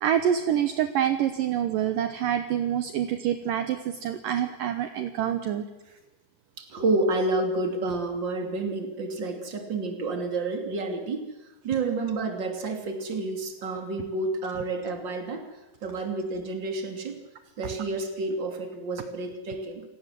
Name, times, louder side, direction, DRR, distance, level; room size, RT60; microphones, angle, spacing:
voice 1, 0.0-5.6, right 10 dB, 70° right, 9 dB, 2.1 m, -26 dB
voice 2, 6.6-11.2 11.6-15.4 15.8-17.2 17.6-19.8, right 2 dB, 30° right, 5 dB, 3.0 m, -29 dB
28.5 x 17.5 x 7.7 m, 1.1 s
omnidirectional pair, 5.1 m